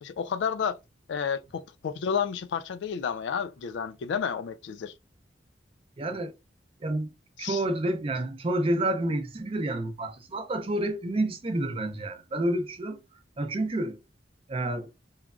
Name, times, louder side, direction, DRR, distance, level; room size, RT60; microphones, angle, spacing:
voice 1, 0.0-0.8 1.1-4.9 7.4-7.6, left 7 dB, 85° left, 0.3 m, -31 dB
voice 2, 6.0-6.3 6.8-7.1 7.4-13.0 13.4-14.0 14.5-14.9, right 1 dB, 30° right, 0.5 m, -29 dB
3.1 x 2.3 x 2.3 m
head